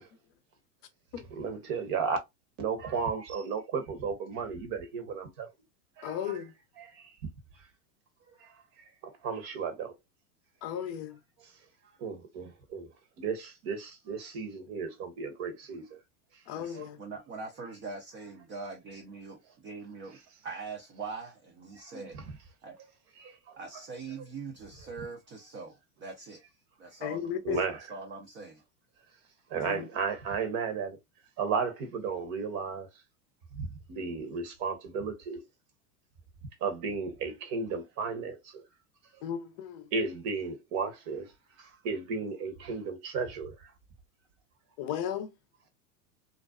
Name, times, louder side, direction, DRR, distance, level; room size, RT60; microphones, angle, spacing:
voice 1, 1.3-2.2 2.6-5.5 6.0-6.4 6.8-6.9 9.2-9.9 12.0-12.9 13.2-15.8 16.7-16.9 21.9-22.2 23.2-23.3 27.4-27.8 29.5-31.0 31.4-32.9 33.6-35.4 36.6-38.4 39.9-41.3 41.8-43.5, right 5 dB, 45° right, 0.9 m, -34 dB
voice 2, 6.0-6.5 10.6-11.2 16.5-17.0 27.0-27.6 29.6-29.9 39.2-39.9 44.8-45.3, left 9 dB, 40° left, 0.6 m, -35 dB
voice 3, 16.5-20.2 20.4-22.1 22.6-22.8 23.6-26.4 26.8-27.4 27.9-28.6, right 4 dB, 30° right, 0.5 m, -42 dB
2.5 x 2.2 x 2.2 m
hypercardioid pair, 115°, 48 cm